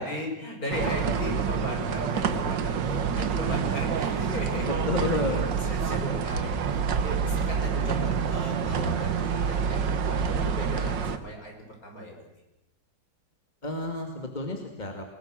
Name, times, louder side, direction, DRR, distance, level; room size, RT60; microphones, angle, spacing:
voice 1, 0.0-4.7 5.2-11.5 11.8-12.3, left 1 dB, 50° left, 1 dB, 6.3 m, -37 dB
sound 1, 0.7-11.2, right 6 dB, 80° right, 1.9 m, -27 dB
sound 2, 2.3-4.8 5.0-5.1 5.4-5.7 6.3-6.7 7.1-7.6 8.6-9.0 9.8-9.9 10.1-10.7, equal, 70° left, 4.5 m, -38 dB
voice 2, 4.7-5.4 13.6-15.0, left 2 dB, 25° left, 3 dB, 2.4 m, -30 dB
29.5 x 20.5 x 6.4 m, 0.90 s
omnidirectional pair, 1.9 m